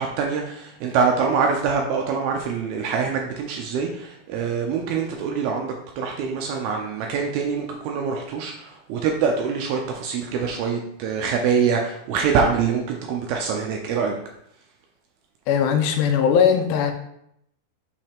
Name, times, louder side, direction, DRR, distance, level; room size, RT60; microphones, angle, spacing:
voice 1, 0.0-14.2, right 6 dB, 80° right, 1 dB, 2.3 m, -24 dB
voice 2, 15.5-16.9, left 7 dB, 80° left, 6 dB, 2.7 m, -19 dB
6.5 x 5.3 x 3.5 m, 0.76 s
omnidirectional pair, 5.0 m